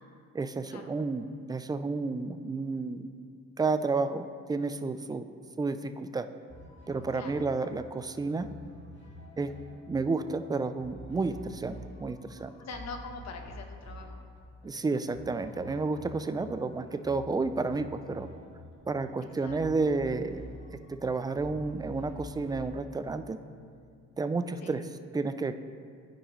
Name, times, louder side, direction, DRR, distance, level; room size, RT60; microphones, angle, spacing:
voice 1, 0.3-3.1 3.6-5.2 5.6-6.3 6.9-8.5 9.4-9.5 9.9-12.5 14.6-18.3 18.9-20.4 20.9-23.4 24.2-24.8 25.1-25.5, right 3 dB, 15° right, 10 dB, 0.3 m, -31 dB
sound 1, 6.5-23.8, left 1 dB, 40° left, 1.9 m, -48 dB
voice 2, 7.1-7.5 12.6-14.3 19.4-19.9 24.6-24.7, left 4 dB, 60° left, 4 dB, 1.0 m, -44 dB
12.5 x 4.9 x 3.1 m, 2.3 s
cardioid pair, 90°, 30 cm